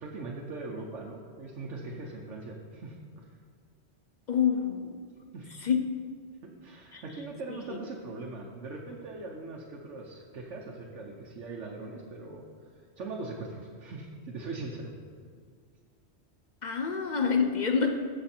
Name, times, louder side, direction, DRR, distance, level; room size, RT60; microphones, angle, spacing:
voice 1, 0.0-3.4 5.3-5.5 6.6-12.7 13.0-14.9, right 3 dB, 90° right, -2 dB, 1.3 m, -41 dB
voice 2, 4.3-5.0 5.6-5.9 6.9-7.0 7.5-7.8 16.6-18.1, left 6 dB, 50° left, 5 dB, 0.6 m, -27 dB
15.0 x 5.7 x 4.4 m, 2.1 s
omnidirectional pair, 1.2 m